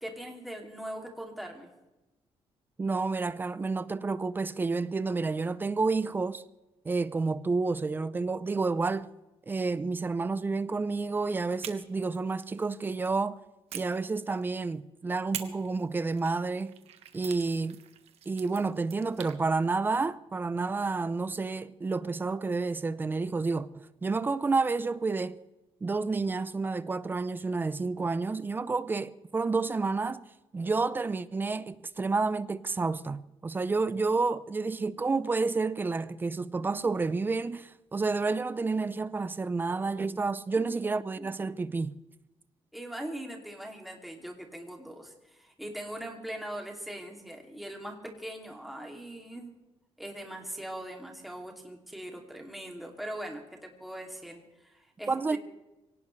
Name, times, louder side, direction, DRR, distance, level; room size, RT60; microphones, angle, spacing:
voice 1, 0.0-1.7 40.7-40.8 41.2-41.3 42.7-49.5 50.0-55.4, right 1 dB, ahead, 2.6 m, -41 dB
voice 2, 2.8-6.4 6.8-9.1 9.5-13.4 13.7-16.7 17.1-17.8 18.3-25.4 25.8-30.2 30.5-41.9 55.1-55.4, right 3 dB, 20° right, 0.6 m, -30 dB
sound 1, 11.6-13.1 13.7-14.7 15.3-19.4, right 10 dB, 85° right, 1.4 m, -45 dB
24.5 x 18.0 x 3.3 m
cardioid pair, 160°, 10 cm